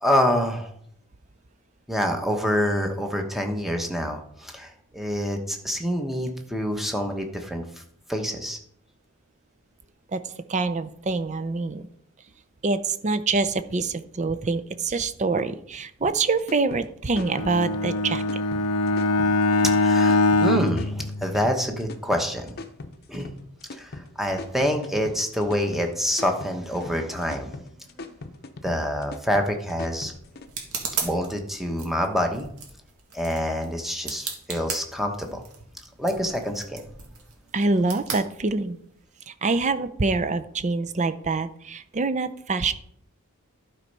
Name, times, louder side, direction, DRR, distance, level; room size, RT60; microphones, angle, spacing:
voice 1, 0.0-0.7 1.9-7.6 8.1-8.6 19.7-22.5 23.1-23.3 23.7-27.5 28.6-30.1 31.0-32.5 33.1-35.4 36.0-36.8, equal, ahead, 4 dB, 1.0 m, -26 dB
voice 2, 10.5-11.9 12.6-18.4 37.5-38.8 39.3-42.7, right 3 dB, 30° right, 11 dB, 0.5 m, -25 dB
sound 1, 16.0-30.5, left 2 dB, 45° left, 0.7 m, -40 dB
Bowed string instrument, 17.2-21.8, left 2 dB, 90° left, 0.6 m, -23 dB
sound 2, 29.4-39.0, right 5 dB, 75° right, 2.0 m, -38 dB
12.0 x 4.5 x 5.4 m, 0.67 s
head